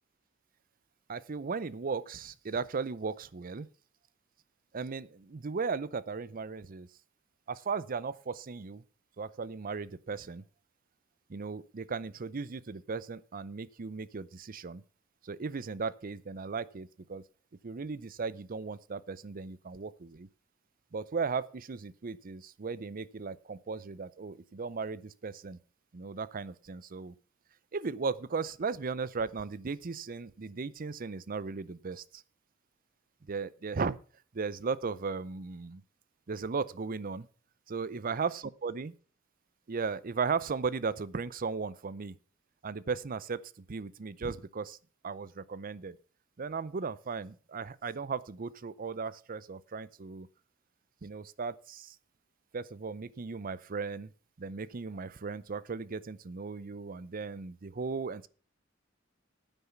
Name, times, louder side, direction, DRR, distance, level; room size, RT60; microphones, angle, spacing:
voice 1, 1.1-3.7 4.7-6.9 7.5-8.8 9.2-10.4 11.3-14.8 15.2-17.2 17.6-20.3 20.9-25.6 25.9-27.1 27.7-32.2 33.3-34.0 34.3-35.8 36.3-37.2 37.7-38.9 39.7-42.2 42.6-44.8 45.0-46.0 46.4-50.3 51.0-52.0 52.5-54.1 54.4-58.3, right 5 dB, 45° right, 18 dB, 0.6 m, -36 dB
9.6 x 9.0 x 5.9 m, 0.40 s
head